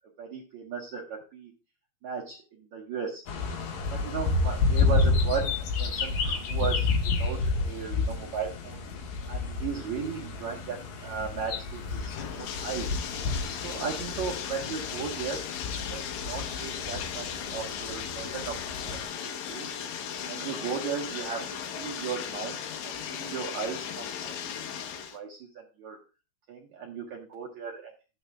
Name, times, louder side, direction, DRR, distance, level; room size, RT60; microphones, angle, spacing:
voice 1, 0.2-1.5 2.0-3.2 3.9-6.9 7.2-8.8 9.3-13.0 13.6-15.4 15.9-18.6 18.8-19.7 20.3-24.6 25.1-26.0 26.5-27.9, right 6 dB, 75° right, -3 dB, 1.7 m, -36 dB
sound 1, 3.3-19.0, left 3 dB, 60° left, 2.7 m, -30 dB
Bathtub (filling or washing), 11.1-25.2, left 8 dB, 80° left, 3.3 m, -37 dB
11.5 x 9.2 x 2.3 m, 0.31 s
omnidirectional pair, 5.3 m